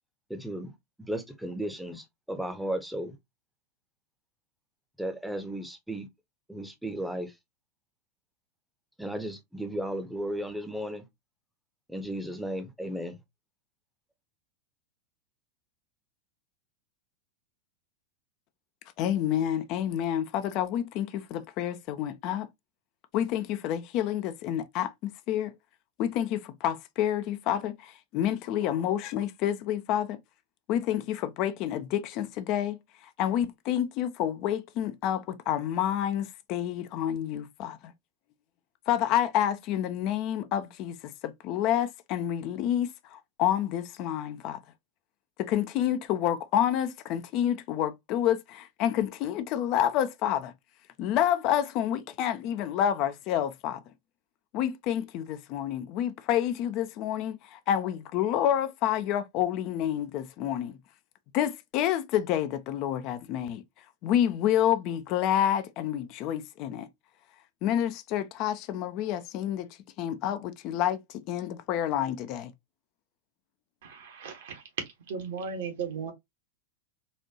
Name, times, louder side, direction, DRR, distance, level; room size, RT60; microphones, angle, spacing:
voice 1, 0.3-0.7 1.0-3.1 5.0-6.1 6.5-7.3 9.0-11.1 11.9-13.2, right 1 dB, ahead, 0.7 m, -35 dB
voice 2, 19.0-22.5 23.1-25.5 26.0-30.2 30.7-32.8 33.2-37.9 38.9-41.0 41.2-44.6 45.4-50.5 51.0-53.8 54.5-60.8 61.3-63.6 64.0-66.9 67.6-69.7 70.0-72.5, left 10 dB, 40° left, 0.4 m, -28 dB
voice 3, 73.8-74.6 75.1-76.1, right 6 dB, 55° right, 1.0 m, -36 dB
4.1 x 2.5 x 2.7 m
figure-of-eight pair, 90°, 0 cm